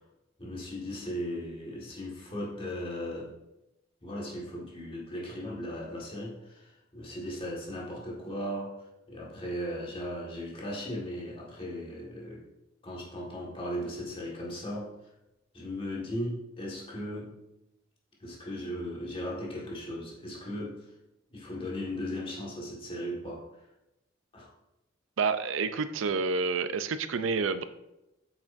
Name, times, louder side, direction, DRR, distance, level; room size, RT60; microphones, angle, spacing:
voice 1, 0.4-3.3 4.0-12.4 12.8-15.0 15.5-17.4 18.2-20.9 21.3-23.5 24.3-24.5, equal, 30° left, -3 dB, 1.7 m, -37 dB
voice 2, 25.2-27.6, right 4 dB, 85° right, 12 dB, 0.5 m, -29 dB
8.3 x 6.0 x 2.6 m, 0.91 s
head